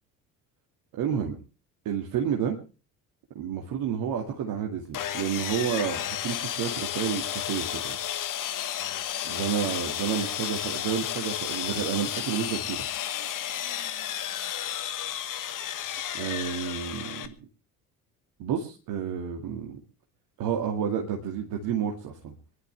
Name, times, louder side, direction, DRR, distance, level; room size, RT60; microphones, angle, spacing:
voice 1, 0.9-1.4 1.9-2.6 3.4-8.0 9.2-12.9 16.1-17.3 18.4-19.8 20.4-22.3, right 8 dB, 50° right, 1 dB, 2.2 m, -30 dB
Sawing, 4.9-17.3, left 11 dB, 45° left, 1.4 m, -32 dB
25.5 x 11.5 x 3.4 m, 0.34 s
figure-of-eight pair, 55°, 45 cm